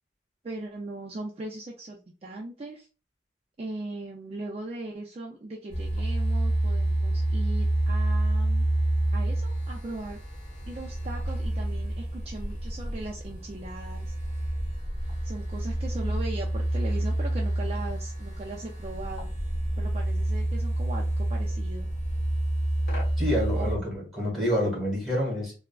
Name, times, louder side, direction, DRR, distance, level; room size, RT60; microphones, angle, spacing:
voice 1, 0.4-2.9 3.6-8.6 9.1-10.2 10.7-14.1 15.2-19.3 19.8-21.9 23.5-23.9, right 2 dB, 30° right, -2 dB, 0.4 m, -39 dB
sound 1, 5.7-23.8, right 1 dB, 55° left, 1.2 m, -28 dB
voice 2, 23.2-25.5, equal, ahead, -3 dB, 1.2 m, -28 dB
3.4 x 2.0 x 2.3 m, 0.33 s
head